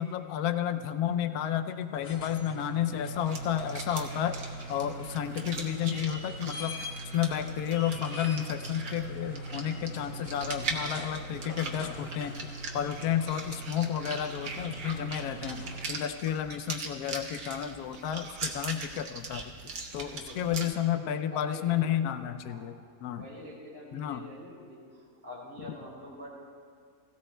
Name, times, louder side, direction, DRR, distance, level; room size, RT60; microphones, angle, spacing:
voice 1, 0.0-4.4 4.7-6.7 7.1-22.7 23.0-23.2 23.9-24.2, left 10 dB, 90° left, 10 dB, 1.1 m, -31 dB
sound 1, 1.8-16.2 17.9-18.0, right 1 dB, 45° left, 1.1 m, -41 dB
sound 2, 3.1-20.7, right 4 dB, 80° right, 1.6 m, -41 dB
voice 2, 20.0-21.0 21.3-22.0 22.4-26.3, left 1 dB, 10° left, -9 dB, 2.7 m, -46 dB
17.0 x 16.0 x 2.2 m, 2.1 s
omnidirectional pair, 1.6 m